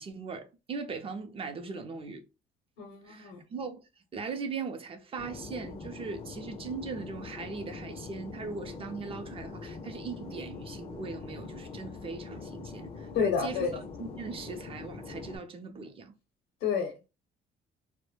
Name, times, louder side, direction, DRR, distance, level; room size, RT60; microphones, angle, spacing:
voice 1, 0.0-2.2 3.0-3.8 4.1-13.7 14.0-16.1, right 4 dB, 35° right, 0.5 m, -39 dB
voice 2, 2.8-3.4 13.1-13.8 16.6-17.1, left 6 dB, 85° left, 0.7 m, -30 dB
Fixed-wing aircraft airplane, 5.2-15.4, left 4 dB, 35° left, 0.5 m, -43 dB
2.2 x 2.1 x 3.1 m
cardioid pair, 110°, 17 cm